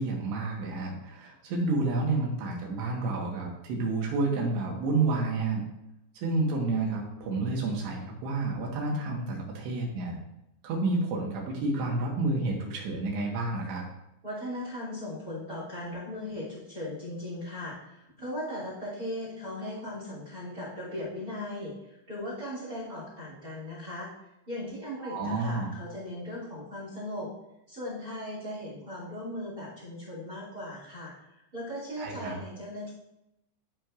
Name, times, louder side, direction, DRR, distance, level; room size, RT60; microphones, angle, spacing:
voice 1, 0.0-5.6 6.2-10.2 10.6-13.8 25.0-25.8 32.0-32.4, right 3 dB, 70° right, -1 dB, 3.5 m, -30 dB
voice 2, 14.2-24.1 24.5-27.3 27.7-31.1 31.5-32.9, left 1 dB, 25° right, -5 dB, 2.5 m, -38 dB
12.5 x 6.0 x 2.5 m, 0.86 s
omnidirectional pair, 5.5 m